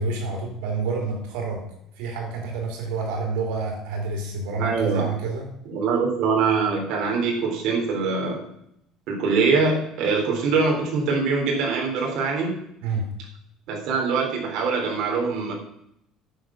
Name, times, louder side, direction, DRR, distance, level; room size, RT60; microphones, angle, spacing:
voice 1, 0.0-1.7 2.0-5.5 12.8-13.1, right 4 dB, 90° right, 2 dB, 3.7 m, -28 dB
voice 2, 4.6-5.1 5.7-8.4 9.1-12.6 13.7-15.5, right 4 dB, 60° right, -1 dB, 3.9 m, -23 dB
10.5 x 7.7 x 6.3 m, 0.75 s
cardioid pair, 145°, 0 cm